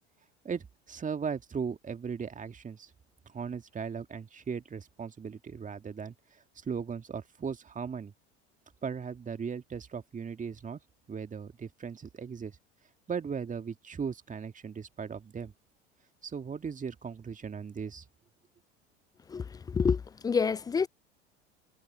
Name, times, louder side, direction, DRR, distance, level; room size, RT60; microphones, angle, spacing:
voice 1, 0.4-2.9 3.3-6.1 6.6-8.1 8.8-10.8 11.1-12.5 13.1-15.5 16.2-18.0, right 6 dB, 25° right, 2.0 m, -37 dB
voice 2, 19.3-20.9, left 5 dB, 10° left, 0.3 m, -28 dB
figure-of-eight pair, 75°, 33 cm